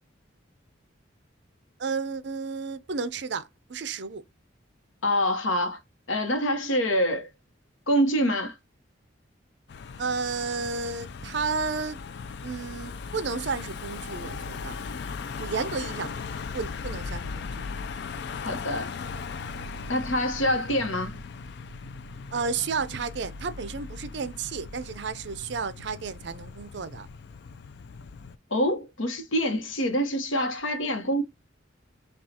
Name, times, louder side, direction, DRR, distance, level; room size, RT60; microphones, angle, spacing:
voice 1, 1.8-4.2 10.0-12.0 12.4-14.8 15.4-16.1 16.5-17.6 22.3-27.1, right 4 dB, 60° right, 0.5 m, -32 dB
voice 2, 5.0-5.8 6.1-7.3 7.9-8.5 18.4-18.9 19.9-21.1 28.5-31.2, equal, 75° left, 0.9 m, -25 dB
Car passing by / Engine, 9.7-28.4, left 5 dB, 55° left, 0.3 m, -38 dB
5.8 x 2.3 x 2.7 m
head